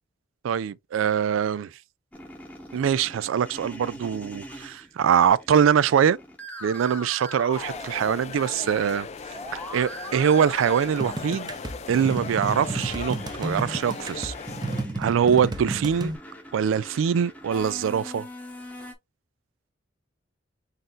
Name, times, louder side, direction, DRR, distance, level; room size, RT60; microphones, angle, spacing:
voice 1, 0.4-1.7 2.7-6.2 6.6-9.1 9.5-11.5 11.9-14.3 15.0-16.1 16.5-18.3, right 8 dB, 90° right, 0.3 m, -23 dB
sound 1, 2.1-8.5 8.7-18.9, equal, 5° left, 0.9 m, -42 dB
sound 2, 7.5-14.8, left 5 dB, 35° left, 0.4 m, -38 dB
sound 3, 11.0-16.2, right 2 dB, 20° right, 0.7 m, -32 dB
4.0 x 3.7 x 2.5 m
head